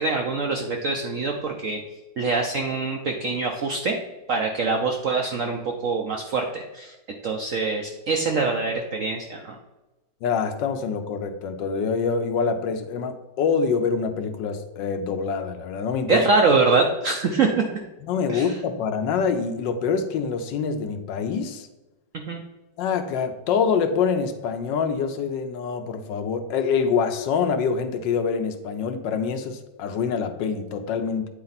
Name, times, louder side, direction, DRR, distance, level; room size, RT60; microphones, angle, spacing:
voice 1, 0.0-1.8 2.2-4.0 4.3-6.9 7.2-9.6 16.1-17.7 18.3-18.6 22.3-22.4, right 4 dB, 70° right, 2 dB, 0.7 m, -24 dB
voice 2, 10.2-16.2 18.1-21.7 22.8-31.3, left 6 dB, 75° left, 7 dB, 1.3 m, -25 dB
8.7 x 4.3 x 4.0 m, 1.0 s
omnidirectional pair, 2.0 m